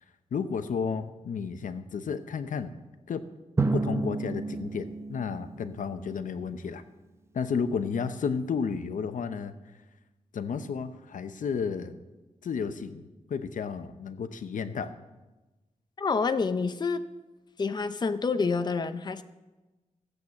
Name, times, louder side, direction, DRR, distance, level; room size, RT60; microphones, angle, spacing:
voice 1, 0.3-2.7 3.1-3.2 3.7-6.8 7.3-9.5 10.3-12.0 12.4-14.9, left 6 dB, 85° left, 10 dB, 0.8 m, -32 dB
Drum, 3.6-6.2, right 3 dB, 20° right, 0.7 m, -31 dB
voice 2, 16.0-17.0 17.6-19.2, left 4 dB, 35° left, 10 dB, 0.6 m, -28 dB
15.0 x 8.0 x 7.1 m, 1.1 s
wide cardioid pair, 155°, 13 cm